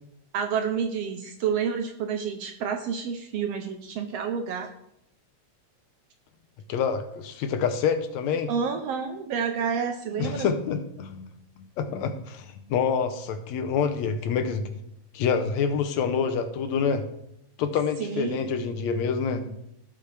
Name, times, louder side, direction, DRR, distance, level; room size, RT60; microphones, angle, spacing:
voice 1, 0.3-4.7 8.5-10.5 18.0-18.6, right 6 dB, 75° right, 6 dB, 1.5 m, -29 dB
voice 2, 6.7-8.5 10.2-11.3 11.8-14.8 15.1-17.0 17.6-19.6, left 6 dB, 75° left, 8 dB, 1.9 m, -27 dB
16.0 x 5.8 x 3.3 m, 0.78 s
omnidirectional pair, 3.3 m